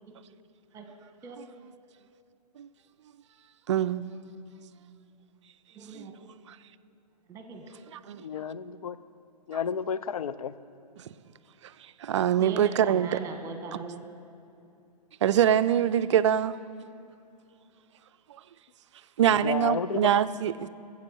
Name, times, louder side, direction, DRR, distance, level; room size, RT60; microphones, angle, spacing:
voice 1, 3.7-4.1 5.9-6.1 8.1-8.2 12.0-13.2 13.7-13.8 15.2-16.6 19.2-20.7, right 10 dB, 45° right, 0.4 m, -24 dB
voice 2, 5.7-6.1 7.3-7.8 12.4-14.0, right 4 dB, 15° right, 1.3 m, -40 dB
voice 3, 8.2-9.0 9.5-10.6 19.2-20.1, left 7 dB, 55° left, 0.5 m, -32 dB
16.5 x 7.7 x 7.1 m
figure-of-eight pair, 120°, 21 cm